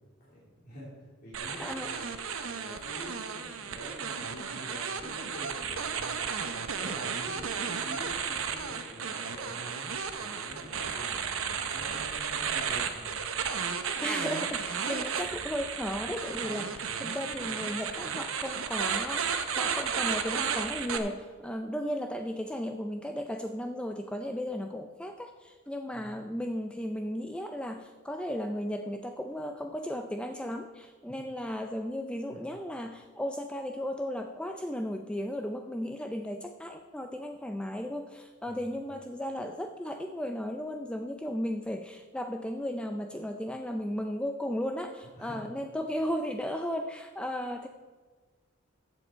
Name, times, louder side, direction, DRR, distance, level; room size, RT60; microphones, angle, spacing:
voice 1, 0.2-2.0 2.5-6.1 6.7-9.9 10.2-13.3 25.9-26.1 31.1-31.2 32.3-32.4 38.4-38.7 45.2-45.4, left 1 dB, 45° left, -9 dB, 3.1 m, -46 dB
sound 1, 1.3-21.0, right 6 dB, 75° right, 0.9 m, -33 dB
voice 2, 1.6-1.9 14.0-47.7, equal, 5° left, 5 dB, 0.4 m, -35 dB
14.0 x 7.5 x 4.4 m, 1.4 s
head